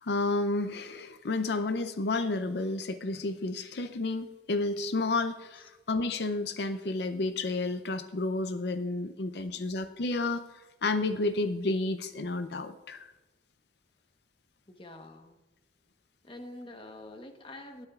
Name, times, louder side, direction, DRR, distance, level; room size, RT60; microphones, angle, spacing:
voice 1, 0.0-13.1, left 2 dB, 65° left, 10 dB, 0.5 m, -31 dB
voice 2, 14.7-15.4 16.2-17.9, left 1 dB, 30° left, 5 dB, 1.1 m, -46 dB
18.0 x 9.7 x 2.4 m, 1.1 s
head